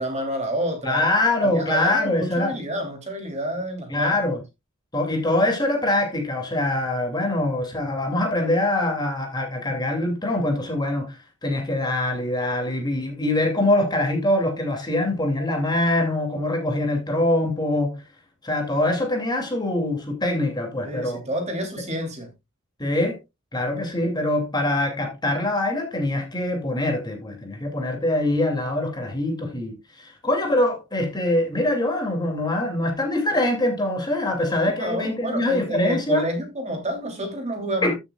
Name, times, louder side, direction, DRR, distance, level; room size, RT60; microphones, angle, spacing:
voice 1, 0.0-1.1 1.4-4.2 20.8-22.3 34.8-37.9, equal, 30° right, 3.0 m, -29 dB
voice 2, 0.8-2.5 3.9-4.4 4.9-18.0 18.4-21.2 22.8-23.2 23.5-36.2 37.8-37.9, left 1 dB, 20° left, 2.5 m, -24 dB
14.5 x 6.9 x 2.3 m
head